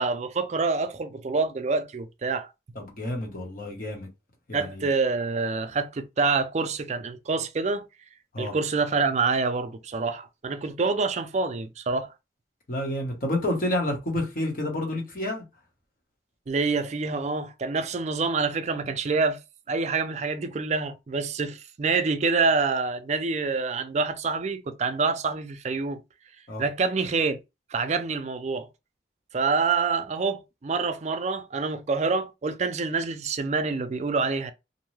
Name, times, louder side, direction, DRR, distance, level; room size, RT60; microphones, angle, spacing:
voice 1, 0.0-2.5 4.5-7.9 8.4-12.1 16.5-19.4 19.7-26.0 26.6-27.4 27.7-28.7 29.3-34.5, right 4 dB, 40° right, 0.4 m, -26 dB
voice 2, 2.7-4.1 4.5-4.9 8.3-8.5 12.7-15.4 26.5-26.6, left 1 dB, 50° left, 1.0 m, -29 dB
2.6 x 2.2 x 3.1 m
head